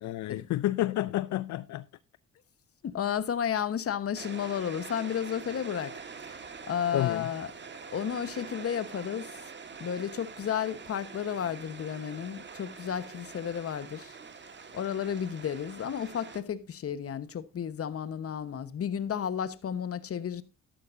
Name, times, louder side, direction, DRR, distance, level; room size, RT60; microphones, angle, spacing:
voice 1, 0.0-1.8 6.9-7.3, left 15 dB, 70° left, 0.5 m, -30 dB
voice 2, 2.8-6.0 6.3-7.5 7.9-9.3 9.8-14.1 14.7-20.4, left 8 dB, 50° left, 1.2 m, -32 dB
sound 1, 4.2-16.4, right 5 dB, 35° right, 1.6 m, -45 dB
13.0 x 11.5 x 2.6 m
cardioid pair, 90°, 30 cm